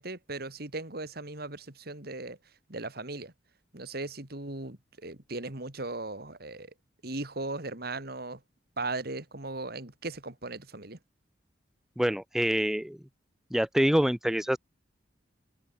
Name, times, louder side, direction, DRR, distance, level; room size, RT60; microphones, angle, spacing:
voice 1, 0.0-2.4 2.7-3.3 3.7-6.7 7.0-8.4 8.8-11.0, right 2 dB, 55° right, 3.0 m, -37 dB
voice 2, 12.0-13.0 13.5-14.6, equal, ahead, 0.3 m, -26 dB
head